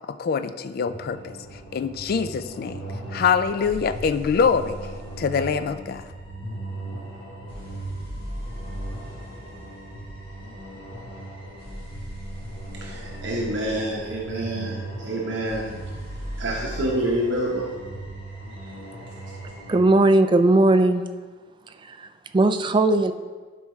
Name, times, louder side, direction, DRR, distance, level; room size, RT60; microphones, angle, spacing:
voice 1, 0.1-2.8 3.1-4.9 5.2-6.0, left 6 dB, 50° left, 11 dB, 0.3 m, -24 dB
sound 1, 0.9-19.8, right 1 dB, 30° left, 2.2 m, -37 dB
voice 2, 12.8-15.7 16.0-17.7 18.5-18.7, right 1 dB, 65° right, -3 dB, 1.1 m, -28 dB
voice 3, 19.7-21.0 21.7-23.1, right 2 dB, 25° right, 8 dB, 0.3 m, -19 dB
12.0 x 4.7 x 3.2 m, 1.4 s
head